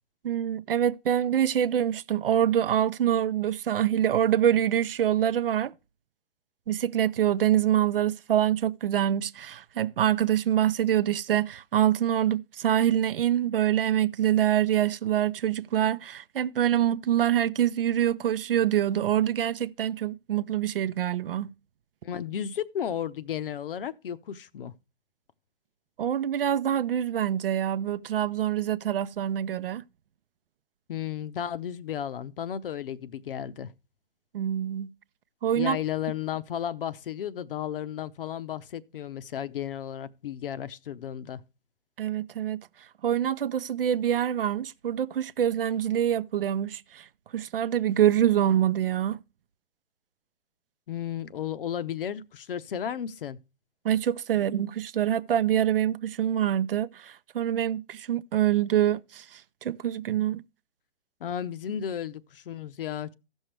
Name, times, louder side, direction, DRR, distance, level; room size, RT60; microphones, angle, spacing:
voice 1, 0.2-5.7 6.7-21.5 26.0-29.8 34.3-34.9 35.4-35.8 42.0-42.6 43.0-47.1 47.3-49.2 53.8-60.4, right 10 dB, 65° right, 0.6 m, -25 dB
voice 2, 22.0-24.7 30.9-33.7 35.6-41.4 50.9-53.4 61.2-63.1, left 9 dB, 60° left, 0.8 m, -33 dB
15.0 x 6.3 x 3.2 m
hypercardioid pair, 130°, 31 cm